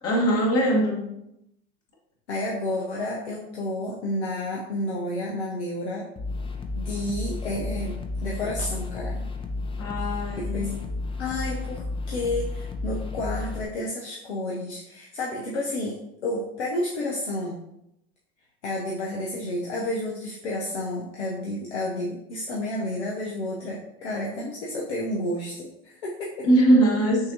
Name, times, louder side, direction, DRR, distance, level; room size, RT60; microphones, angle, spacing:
voice 1, 0.0-1.1 9.8-10.7 26.4-27.3, right 1 dB, 50° left, -2 dB, 1.5 m, -21 dB
voice 2, 2.3-6.1 6.7-9.2 10.0-10.8 11.2-17.6 18.6-26.5, left 1 dB, 90° left, -3 dB, 0.7 m, -31 dB
sound 1, 6.2-13.7, left 3 dB, 15° left, 0.5 m, -32 dB
6.1 x 2.7 x 2.7 m, 0.83 s
hypercardioid pair, 80°, 33 cm